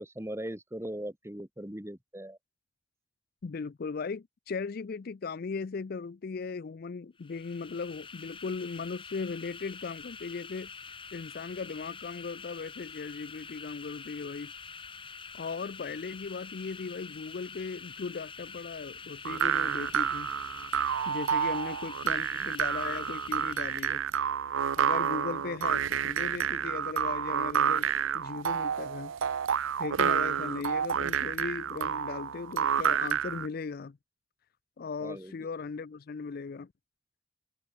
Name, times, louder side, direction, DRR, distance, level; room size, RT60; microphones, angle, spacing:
voice 1, 0.0-2.4 35.0-35.4, right 1 dB, 15° right, 1.4 m, -39 dB
voice 2, 3.4-10.7 11.1-14.5 15.3-20.3 21.1-24.0 24.8-27.9 28.1-29.1 29.8-34.0 34.8-36.7, left 4 dB, 45° left, 0.4 m, -37 dB
sound 1, 7.2-24.1, left 5 dB, 25° left, 4.0 m, -46 dB
sound 2, 19.2-33.5, right 8 dB, 75° right, 0.5 m, -29 dB
head